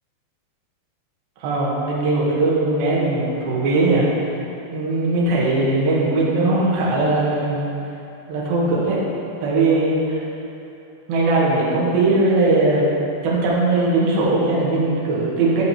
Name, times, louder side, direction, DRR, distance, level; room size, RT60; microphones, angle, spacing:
voice 1, 1.4-4.3 4.7-7.6 8.3-9.0 9.4-10.2 11.1-12.8 13.2-15.6, right 2 dB, 70° right, -5 dB, 2.8 m, -19 dB
11.0 x 6.3 x 2.9 m, 2.8 s
omnidirectional pair, 5.1 m